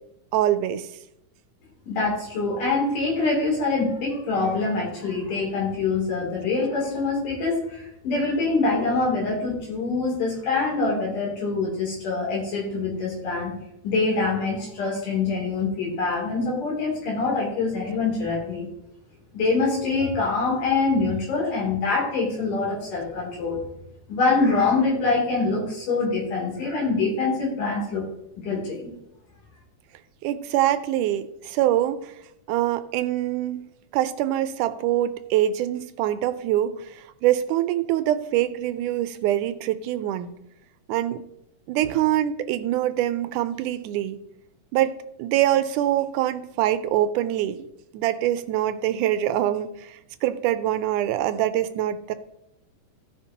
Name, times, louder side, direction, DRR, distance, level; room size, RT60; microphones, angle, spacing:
voice 1, 0.3-0.9 28.5-28.6 30.2-32.2 32.5-33.7 33.9-40.3 40.9-41.2 41.7-44.2 44.7-44.9 45.2-47.7 47.9-52.1, right 12 dB, 80° right, 11 dB, 2.0 m, -24 dB
voice 2, 1.9-13.5 13.8-18.7 19.3-23.6 24.1-28.1 28.4-28.9, left 3 dB, 75° left, -3 dB, 4.5 m, -25 dB
16.0 x 5.9 x 2.8 m, 0.80 s
omnidirectional pair, 3.7 m